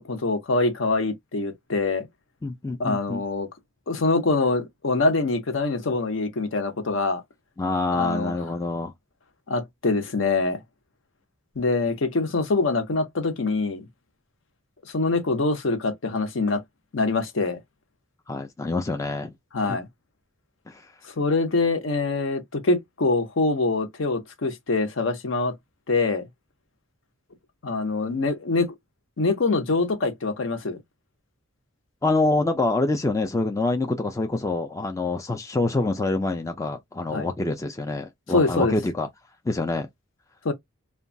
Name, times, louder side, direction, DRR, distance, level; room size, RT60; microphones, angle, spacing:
voice 1, 0.0-2.1 2.8-3.5 3.9-7.2 7.9-8.3 9.5-10.6 11.6-13.9 14.9-16.6 16.9-17.6 19.5-19.9 21.2-25.5 25.9-26.2 27.6-28.7 29.2-30.8 37.1-37.3 38.3-38.7 40.4-40.5, left 3 dB, 60° left, 0.6 m, -24 dB
voice 2, 2.4-3.2 7.6-8.9 18.3-19.3 19.7-19.8 20.7-20.8 32.0-39.1 39.5-39.9, left 2 dB, 15° left, 0.3 m, -26 dB
2.8 x 2.2 x 2.6 m
head